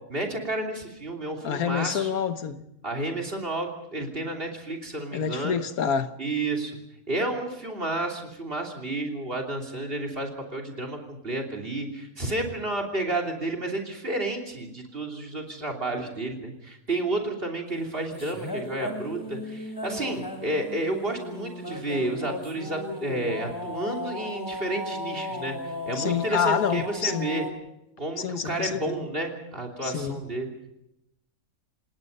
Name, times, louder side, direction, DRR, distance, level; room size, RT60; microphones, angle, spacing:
voice 1, 0.1-2.2 2.8-5.6 6.2-6.8 7.1-27.4 28.0-30.5, right 2 dB, 40° right, 3.4 m, -31 dB
voice 2, 1.4-2.6 5.1-6.1 26.0-27.3 28.2-28.9 29.8-30.2, left 7 dB, 80° left, 1.6 m, -27 dB
sound 1, 18.1-27.5, left 2 dB, 15° left, 2.9 m, -35 dB
28.0 x 19.0 x 5.5 m
omnidirectional pair, 1.5 m